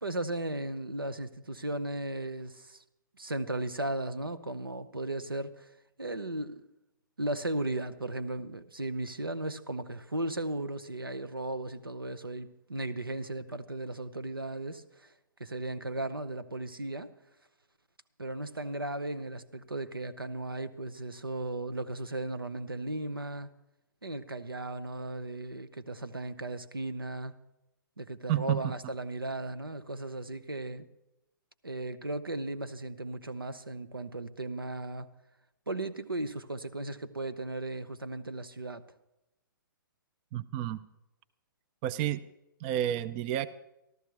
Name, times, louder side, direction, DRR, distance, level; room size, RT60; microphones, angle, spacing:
voice 1, 0.0-2.8 3.2-5.7 6.0-6.7 7.2-15.1 15.4-17.1 18.2-23.5 24.0-27.3 28.0-30.9 31.6-35.1 35.7-38.8, right 2 dB, 85° right, 11 dB, 0.8 m, -36 dB
voice 2, 28.3-28.7 40.3-40.8 41.8-42.2 42.6-43.5, right 12 dB, 25° right, 15 dB, 0.4 m, -30 dB
13.5 x 13.0 x 4.6 m, 0.88 s
figure-of-eight pair, 120°, 12 cm